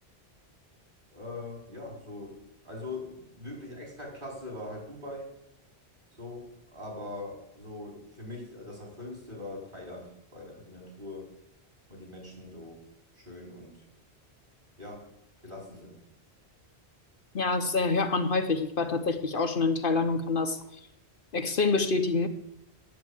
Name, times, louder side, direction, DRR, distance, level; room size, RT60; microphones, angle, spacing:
voice 1, 1.1-5.3 6.2-11.3 11.9-12.9 13.1-13.9 14.8-15.1 15.4-16.0, left 2 dB, 50° right, -1 dB, 5.0 m, -42 dB
voice 2, 17.3-20.6 21.3-22.3, left 3 dB, 55° left, 7 dB, 1.0 m, -26 dB
10.5 x 7.7 x 8.7 m, 0.84 s
omnidirectional pair, 1.1 m